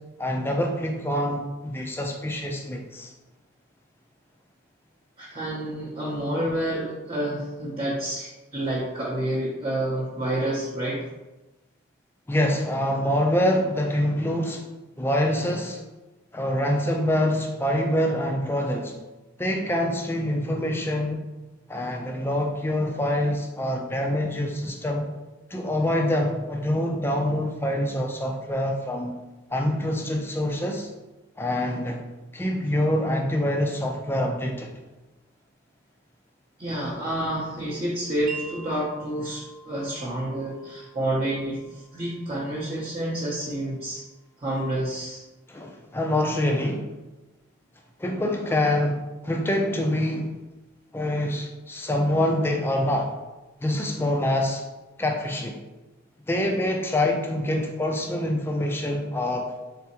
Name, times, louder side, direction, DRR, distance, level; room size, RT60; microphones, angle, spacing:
voice 1, 0.2-3.1 12.3-14.6 15.0-15.8 16.3-18.9 19.4-21.2 21.7-25.1 25.5-29.2 29.5-30.9 31.4-32.0 32.3-34.7 45.5-46.9 48.0-50.4 50.9-53.1 53.6-54.6 55.0-55.6 56.3-59.5, left 1 dB, 10° left, 2 dB, 0.4 m, -25 dB
voice 2, 5.2-11.0 36.6-44.0 44.4-45.2, right 1 dB, 30° right, -7 dB, 0.7 m, -29 dB
Wind chime, 38.3-44.4, right 3 dB, 70° right, 0.6 m, -46 dB
4.0 x 3.5 x 2.9 m, 1.1 s
head